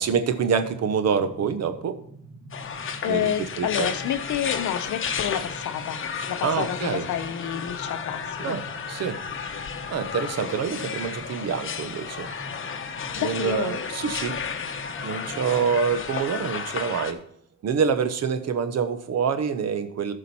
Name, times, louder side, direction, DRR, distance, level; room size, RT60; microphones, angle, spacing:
voice 1, 0.0-2.0 3.0-3.9 6.4-7.0 8.4-8.6 8.9-9.2 9.9-12.3 13.2-14.3 15.0-17.2 17.6-20.1, right 6 dB, 60° right, 10 dB, 1.1 m, -26 dB
sound 1, 0.6-16.0, right 1 dB, 25° right, 1.8 m, -45 dB
sound 2, 2.5-17.1, left 6 dB, 45° left, 1.0 m, -33 dB
voice 2, 2.8-6.0 6.3-8.6 13.1-13.7, left 10 dB, 70° left, 10 dB, 0.8 m, -29 dB
14.0 x 5.3 x 4.3 m, 0.68 s
cardioid pair, 90°, 30 cm